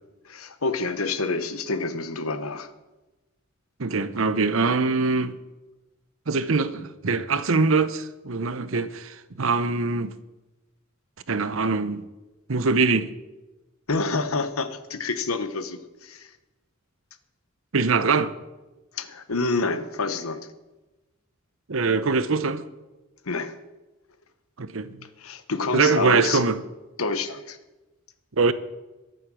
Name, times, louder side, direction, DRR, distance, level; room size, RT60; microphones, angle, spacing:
voice 1, 0.2-2.7 13.9-16.3 18.9-20.5 23.2-23.6 25.2-26.4 27.0-27.6, left 3 dB, 80° left, 1.2 m, -28 dB
voice 2, 3.8-5.3 6.3-10.1 11.3-12.0 12.5-13.1 17.7-18.3 21.7-22.6 24.6-25.0 25.7-26.6 28.4-28.5, right 4 dB, 70° right, 0.9 m, -23 dB
22.5 x 8.0 x 6.2 m
head